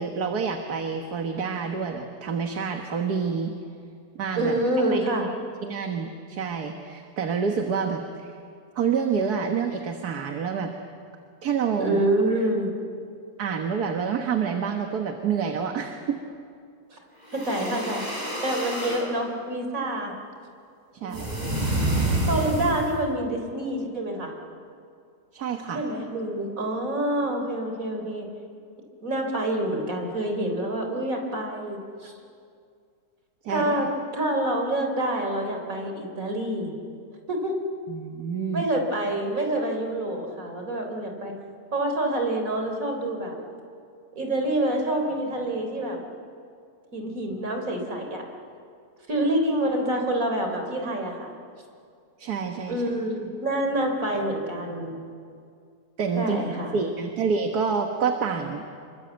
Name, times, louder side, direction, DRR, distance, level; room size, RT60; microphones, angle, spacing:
voice 1, 0.0-3.5 4.2-4.6 4.9-5.0 5.6-8.3 8.8-10.7 11.4-12.0 13.4-16.2 20.9-21.3 25.3-25.8 33.4-33.9 37.9-38.7 52.2-52.8 56.0-56.4 56.7-58.6, right 6 dB, 75° right, 4 dB, 1.9 m, -28 dB
voice 2, 4.4-5.3 11.8-12.7 16.9-17.0 17.3-18.0 18.4-20.1 21.0-21.6 22.3-24.3 25.7-28.3 29.0-32.1 33.5-33.9 34.1-36.7 37.3-37.5 38.5-41.3 41.7-43.4 44.2-46.0 46.9-48.2 49.1-51.3 52.7-55.0 56.2-56.7, right 1 dB, 55° right, 3 dB, 4.2 m, -27 dB
sound 1, 17.2-19.1 21.1-23.0, right 1 dB, 25° right, 6.0 m, -28 dB
27.0 x 23.5 x 8.0 m, 2.3 s
omnidirectional pair, 1.7 m